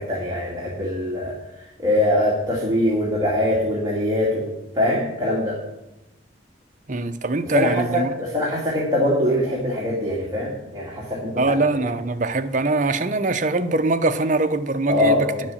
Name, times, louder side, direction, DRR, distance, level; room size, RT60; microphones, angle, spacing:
voice 1, 0.0-1.3 1.8-5.6 7.4-11.6 14.9-15.4, left 1 dB, 20° right, 2.2 m, -23 dB
voice 2, 6.9-8.1 11.4-15.3, right 2 dB, 40° right, 0.7 m, -22 dB
10.5 x 7.5 x 7.1 m
head